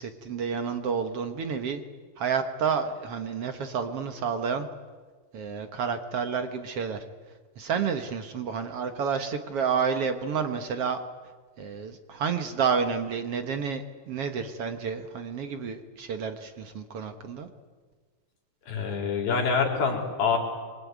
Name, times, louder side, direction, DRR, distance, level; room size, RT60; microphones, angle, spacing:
voice 1, 0.0-1.8 2.2-4.7 5.3-7.0 7.6-11.0 11.6-17.5, right 6 dB, 60° right, 8 dB, 1.6 m, -30 dB
voice 2, 18.7-20.4, left 5 dB, 80° left, 2 dB, 5.6 m, -26 dB
25.5 x 23.5 x 9.5 m, 1.5 s
omnidirectional pair, 4.2 m